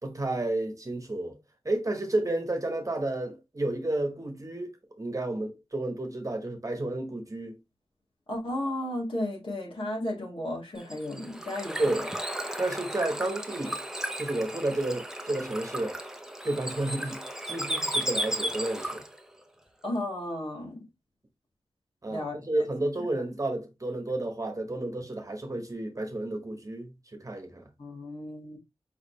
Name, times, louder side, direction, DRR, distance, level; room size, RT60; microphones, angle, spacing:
voice 1, 0.0-1.4 1.6-7.6 11.8-12.1 12.6-13.8 14.2-16.0 16.4-19.0 22.0-27.7, right 2 dB, 35° right, 1.2 m, -31 dB
voice 2, 8.3-11.8 19.8-20.8 22.1-22.6 27.8-28.6, left 1 dB, 60° left, 2.0 m, -34 dB
Bird / Water, 10.8-19.2, right 1 dB, 5° right, 0.7 m, -34 dB
5.0 x 3.4 x 3.0 m
wide cardioid pair, 85°, 10 cm